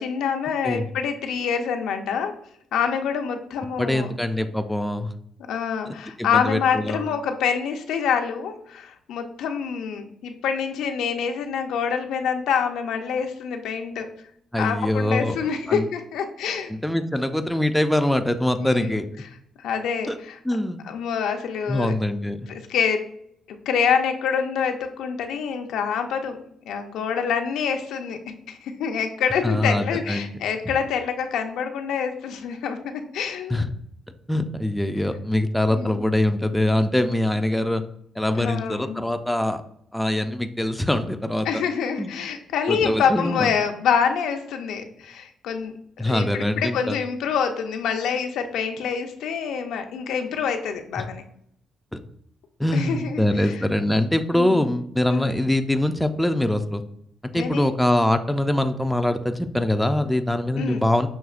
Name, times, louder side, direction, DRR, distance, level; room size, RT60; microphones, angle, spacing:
voice 1, 0.0-2.3 2.7-4.1 5.5-14.1 14.6-16.7 18.6-18.9 19.6-20.4 20.8-21.9 22.5-23.0 23.5-26.4 26.7-28.2 28.5-33.6 35.7-36.0 38.3-39.0 41.4-45.7 46.1-51.2 52.7-53.6 54.3-54.6 55.1-55.3 57.3-57.6 60.6-60.8, left 7 dB, 80° left, 5 dB, 0.5 m, -26 dB
voice 2, 3.8-5.1 5.9-7.0 14.5-15.4 15.7-15.9 16.7-19.1 20.1-20.2 20.4-20.8 21.7-22.5 29.4-30.3 33.5-33.7 34.3-37.8 38.2-39.6 39.9-41.5 42.0-42.1 42.7-43.5 46.0-47.0 51.0-51.1 51.9-52.0 52.6-56.8 57.3-61.1, left 1 dB, 5° left, 7 dB, 0.3 m, -23 dB
6.1 x 2.8 x 2.4 m, 0.71 s
cardioid pair, 90°, 0 cm